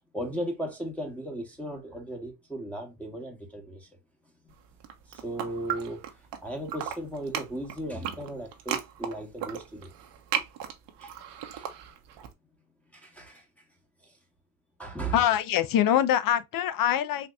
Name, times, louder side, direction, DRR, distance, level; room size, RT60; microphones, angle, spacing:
voice 1, 0.1-3.9 4.4-4.5 5.1-9.9 11.0-11.1 11.6-11.7 12.9-13.5 14.0-14.2 14.8-15.2, right 1 dB, 5° left, 1.1 m, -36 dB
sound 1, 4.7-6.4 6.7-12.3, right 9 dB, 60° right, 1.0 m, -35 dB
voice 2, 15.1-17.3, left 10 dB, 45° left, 0.7 m, -24 dB
4.4 x 2.8 x 2.3 m
supercardioid pair, 100°, 47 cm